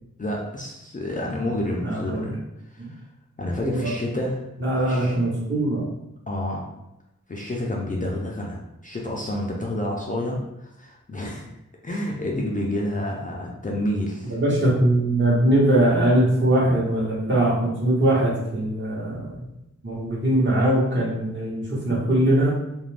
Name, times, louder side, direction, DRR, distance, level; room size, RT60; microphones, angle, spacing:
voice 1, 0.2-2.4 2.7-2.9 3.4-4.4 4.8-5.2 6.3-6.7 7.3-11.5 11.8-14.4, left 1 dB, 30° left, -2 dB, 0.4 m, -29 dB
voice 2, 1.8-2.3 2.8-2.9 3.6-4.0 4.6-5.9 14.3-19.4 19.8-22.5, right 1 dB, 40° right, -7 dB, 1.1 m, -21 dB
2.5 x 2.1 x 3.2 m, 0.89 s
wide cardioid pair, 100°, 30 cm